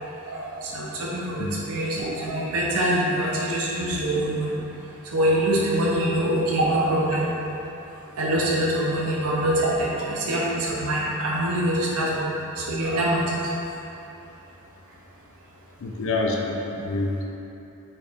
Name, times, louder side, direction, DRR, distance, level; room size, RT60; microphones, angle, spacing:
voice 1, 0.2-4.6 5.1-7.3 8.2-13.4, right 1 dB, 75° right, -5 dB, 0.7 m, -24 dB
voice 2, 15.8-17.2, left 2 dB, 60° left, -1 dB, 0.4 m, -27 dB
4.3 x 3.3 x 3.5 m, 2.9 s
head